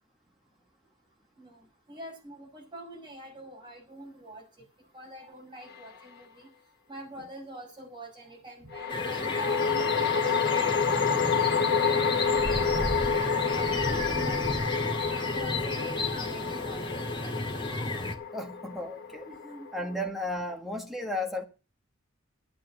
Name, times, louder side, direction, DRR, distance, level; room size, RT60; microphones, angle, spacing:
voice 1, 1.4-4.4 4.9-6.5 6.9-10.4 10.9-13.9 14.2-14.7 15.1-17.6 19.2-19.8, right 2 dB, 25° right, 6.6 m, -45 dB
sound 1, 5.7-5.9 8.7-20.1, left 6 dB, 55° left, 1.0 m, -29 dB
sound 2, 8.9-18.1, left 1 dB, 25° left, 1.9 m, -33 dB
voice 2, 18.3-19.3 19.7-21.4, left 1 dB, ahead, 1.7 m, -34 dB
12.0 x 9.6 x 6.4 m
head